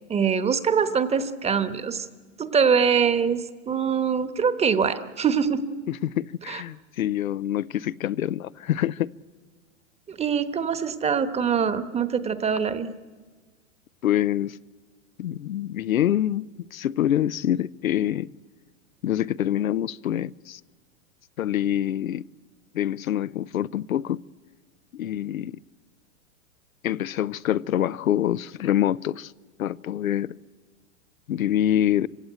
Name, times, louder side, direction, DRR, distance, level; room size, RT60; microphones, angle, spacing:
voice 1, 0.1-2.1 2.4-5.6 6.5-6.6 10.1-12.9, right 6 dB, 15° right, 1.1 m, -23 dB
voice 2, 5.9-9.1 14.0-14.6 15.2-18.3 19.0-20.6 21.4-22.2 22.7-24.2 24.9-25.6 26.8-29.3 29.6-30.3 31.3-32.1, left 11 dB, 90° left, 0.6 m, -25 dB
27.0 x 16.5 x 9.1 m
hypercardioid pair, 115°, 40 cm